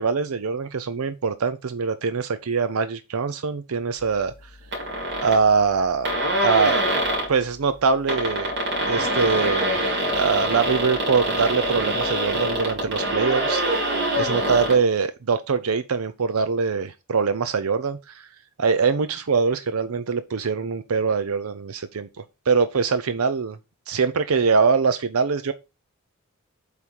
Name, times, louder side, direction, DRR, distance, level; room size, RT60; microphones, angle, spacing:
voice 1, 0.0-4.3 5.2-6.1 6.4-6.9 7.3-8.5 8.9-9.7 10.1-13.6 14.2-18.3 18.6-22.1 22.5-23.6 23.9-25.5, right 5 dB, 85° right, 0.6 m, -23 dB
sound 1, 4.7-5.4 5.8-5.9 6.0-7.3 7.9-14.8, right 1 dB, 55° right, 3.1 m, -24 dB
8.1 x 3.7 x 4.6 m
head